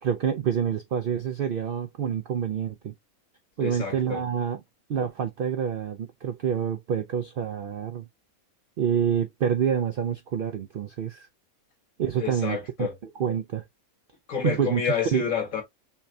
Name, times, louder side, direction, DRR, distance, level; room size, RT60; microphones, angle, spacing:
voice 1, 0.0-2.9 3.6-4.6 4.9-8.1 8.8-11.3 12.0-12.6 13.2-13.6 14.4-14.8 15.1-15.3, right 8 dB, 70° right, 0.5 m, -27 dB
voice 2, 3.6-4.2 12.2-13.0 14.3-15.6, left 7 dB, 70° left, 2.0 m, -29 dB
5.7 x 2.1 x 2.7 m
omnidirectional pair, 1.5 m